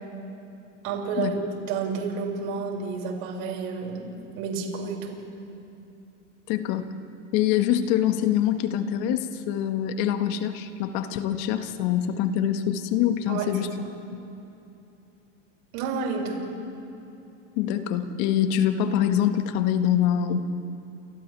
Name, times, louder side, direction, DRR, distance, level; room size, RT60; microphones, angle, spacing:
voice 1, 0.8-1.4 1.7-4.1 4.3-5.2 13.3-13.5 13.8-13.9 15.7-16.4, right 5 dB, 55° right, -1 dB, 6.2 m, -30 dB
voice 2, 6.5-6.9 7.3-13.7 14.1-14.2 17.6-20.4, left 10 dB, 55° left, 8 dB, 1.8 m, -24 dB
29.5 x 27.5 x 3.5 m, 2.9 s
hypercardioid pair, 105°, 37 cm